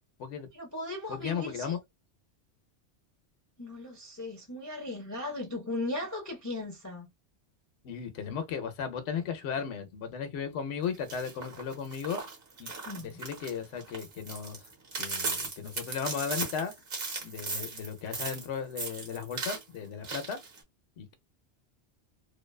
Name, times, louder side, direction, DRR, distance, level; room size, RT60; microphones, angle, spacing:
voice 1, 0.5-1.8 3.6-7.1 12.8-13.2, left 2 dB, 25° left, 0.4 m, -37 dB
voice 2, 1.1-1.8 7.8-12.2 12.6-14.6 15.0-16.7 17.2-20.4 21.0-21.1, left 7 dB, 80° left, 0.9 m, -36 dB
sound 1, 10.9-18.5 18.8-19.6 20.0-20.6, right 3 dB, 60° right, 1.1 m, -37 dB
2.6 x 2.1 x 2.2 m
omnidirectional pair, 1.2 m